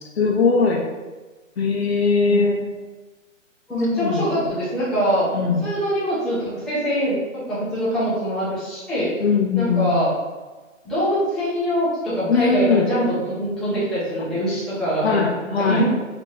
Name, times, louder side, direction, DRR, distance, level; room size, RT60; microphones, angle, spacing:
voice 1, 0.2-0.8 1.6-2.7 3.9-4.4 5.2-5.7 9.2-10.0 12.3-12.9 15.0-15.8, left 4 dB, 50° left, 0 dB, 0.7 m, -20 dB
voice 2, 3.7-5.3 5.6-9.1 9.5-10.1 10.8-15.2 15.6-15.9, equal, ahead, -13 dB, 0.9 m, -23 dB
3.5 x 2.9 x 4.7 m, 1.3 s
hypercardioid pair, 160°, 40 cm